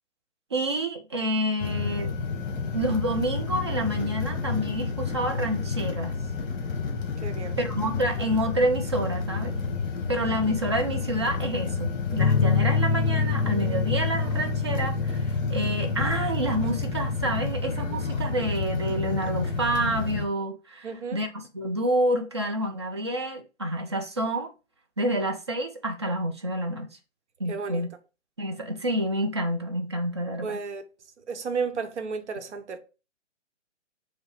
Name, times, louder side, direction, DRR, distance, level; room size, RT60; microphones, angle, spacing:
voice 1, 0.5-2.1 2.7-6.1 7.6-9.5 10.1-21.3 21.5-24.5 25.0-26.9 27.4-27.9 28.4-30.6, right 1 dB, 25° right, 0.4 m, -28 dB
sound 1, 1.6-20.3, left 4 dB, 40° left, 1.2 m, -30 dB
voice 2, 7.2-7.6 20.8-21.2 27.5-27.9 30.4-30.8 31.2-32.8, right 5 dB, 65° right, 0.9 m, -32 dB
sound 2, 12.2-19.8, left 5 dB, 80° left, 0.5 m, -29 dB
5.1 x 2.1 x 4.6 m
figure-of-eight pair, 140°, 37 cm